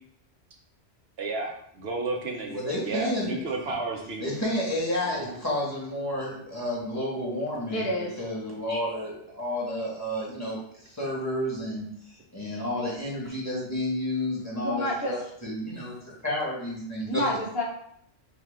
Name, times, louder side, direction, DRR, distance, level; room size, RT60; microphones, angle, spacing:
voice 1, 1.2-4.2 5.0-5.3, right 3 dB, 65° right, 1 dB, 0.9 m, -32 dB
voice 2, 2.5-3.4 4.2-10.6 10.8-17.4, left 1 dB, 15° left, -6 dB, 1.6 m, -31 dB
voice 3, 7.7-8.1 14.6-15.1 17.1-17.6, equal, 60° left, -3 dB, 1.2 m, -28 dB
6.0 x 2.4 x 3.6 m, 0.69 s
omnidirectional pair, 1.2 m